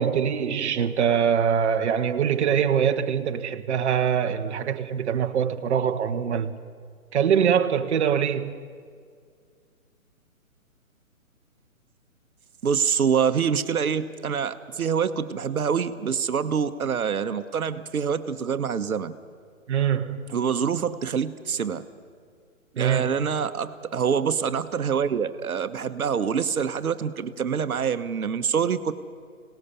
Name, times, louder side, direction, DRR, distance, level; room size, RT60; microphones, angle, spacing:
voice 1, 0.0-6.6 7.1-8.6 19.7-20.3 22.8-23.1, right 8 dB, 50° right, 1.1 m, -23 dB
voice 2, 12.6-19.1 20.3-21.8 22.8-28.9, right 7 dB, 75° right, 1.2 m, -26 dB
25.5 x 18.5 x 7.0 m
hypercardioid pair, 150°, 43 cm